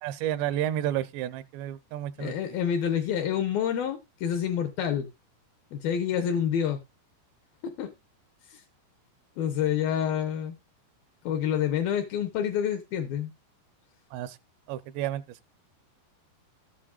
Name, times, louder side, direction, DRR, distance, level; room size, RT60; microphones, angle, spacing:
voice 1, 0.0-2.4 14.1-14.4 14.7-15.2, right 12 dB, 80° right, 2.7 m, -31 dB
voice 2, 2.2-5.1 5.7-6.8 7.6-7.9 8.5-8.6 9.4-10.6 11.2-13.3, left 9 dB, 75° left, 2.3 m, -28 dB
13.5 x 8.6 x 2.4 m
omnidirectional pair, 5.1 m